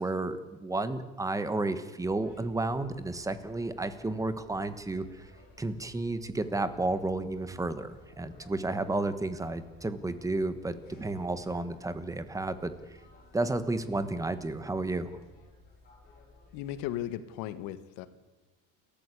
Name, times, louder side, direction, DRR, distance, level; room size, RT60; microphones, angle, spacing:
voice 1, 0.0-5.3 5.6-12.7 13.3-15.2, right 2 dB, 10° right, 12 dB, 1.4 m, -32 dB
sound 1, 2.0-17.1, left 3 dB, 25° left, 6.7 m, -57 dB
voice 2, 16.5-18.1, left 12 dB, 80° left, 12 dB, 1.8 m, -36 dB
29.5 x 14.0 x 8.4 m, 1.2 s
cardioid pair, 155°, 34 cm